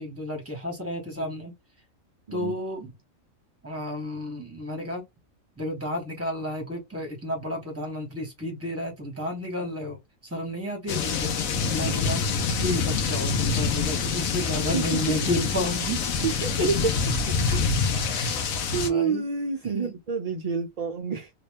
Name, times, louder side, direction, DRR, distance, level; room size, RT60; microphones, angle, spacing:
voice 1, 0.0-1.5 2.3-2.9 3.6-5.0 5.6-10.0 10.2-12.2 12.6-16.0 16.3-16.7 17.4-18.2 18.7-19.3 19.7-19.9, left 1 dB, 10° right, 1.3 m, -32 dB
sound 1, 10.9-18.9, left 5 dB, 85° left, 1.1 m, -26 dB
voice 2, 16.2-16.8 17.3-17.4 18.1-18.5 18.7-21.3, right 6 dB, 50° right, 0.4 m, -29 dB
3.0 x 2.6 x 3.4 m
omnidirectional pair, 1.4 m